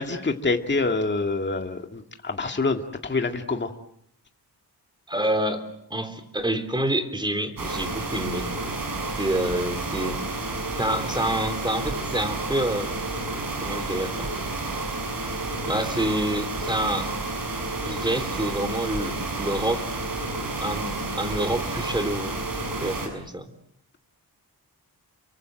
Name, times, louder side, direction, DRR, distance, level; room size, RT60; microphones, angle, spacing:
voice 1, 0.0-3.7, left 3 dB, 25° left, 5 dB, 2.1 m, -26 dB
voice 2, 5.1-8.5 9.2-10.2 10.8-13.0 13.6-14.3 15.7-17.1 17.8-19.9 20.6-22.4 22.8-23.5, right 1 dB, 10° right, 9 dB, 3.6 m, -27 dB
sound 1, 7.6-23.1, right 2 dB, 55° right, 7.2 m, -30 dB
29.5 x 23.5 x 7.8 m, 0.71 s
wide cardioid pair, 130°, 39 cm